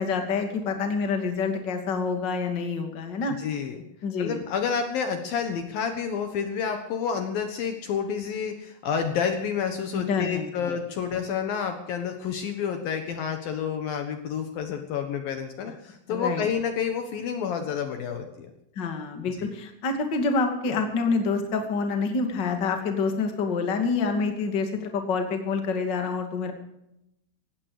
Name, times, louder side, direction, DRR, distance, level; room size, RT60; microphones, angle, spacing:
voice 1, 0.0-3.4 4.0-4.4 9.9-10.6 16.1-16.4 18.8-26.5, left 4 dB, 30° left, 5 dB, 2.4 m, -27 dB
voice 2, 3.4-3.8 4.2-18.5 19.4-19.5, left 7 dB, 65° left, 6 dB, 2.9 m, -29 dB
18.0 x 16.0 x 5.0 m, 0.81 s
omnidirectional pair, 4.9 m